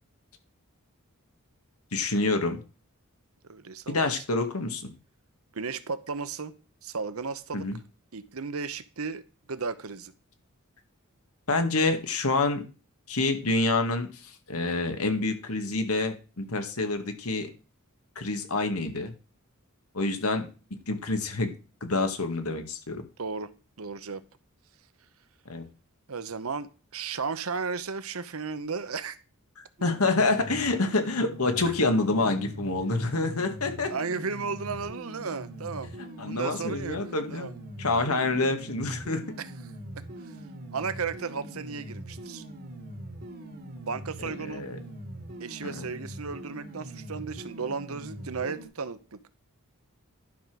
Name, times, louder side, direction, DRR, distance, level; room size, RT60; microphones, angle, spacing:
voice 1, 1.9-2.6 3.9-4.9 7.5-7.8 11.5-12.6 13.1-17.5 18.2-19.1 19.9-20.5 20.9-21.5 21.8-23.0 25.5-25.6 29.8-33.9 36.0-37.5 37.8-39.2 44.2-44.8 45.6-45.9, left 3 dB, 85° left, 6 dB, 1.8 m, -27 dB
voice 2, 3.4-4.1 5.5-6.5 6.8-7.7 8.1-9.2 9.5-10.1 23.2-23.5 23.8-24.2 26.1-29.2 31.6-31.7 33.9-35.9 36.2-37.0 37.3-37.6 39.4-39.5 40.2-40.3 40.7-42.4 43.9-44.6 45.4-49.2, right 5 dB, 70° right, 13 dB, 0.9 m, -34 dB
sound 1, 29.8-48.7, right 1 dB, 45° right, 1.8 m, -42 dB
11.5 x 5.1 x 6.1 m, 0.34 s
head